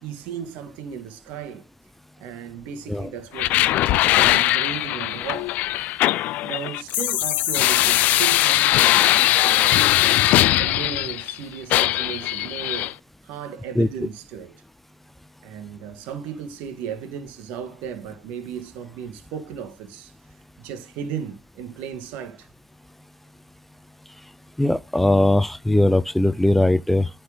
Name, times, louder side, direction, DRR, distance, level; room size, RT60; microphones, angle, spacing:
voice 1, 0.0-1.6 2.2-5.6 6.4-9.8 10.6-13.0 13.2-14.6 15.4-20.1 20.6-22.5, right 7 dB, 75° right, 1.8 m, -35 dB
sound 1, 3.4-11.4 11.7-12.9, left 15 dB, 70° left, 0.4 m, -20 dB
voice 2, 24.6-27.1, left 1 dB, 5° left, 0.6 m, -19 dB
9.5 x 4.5 x 3.6 m
hypercardioid pair, 65°, 3 cm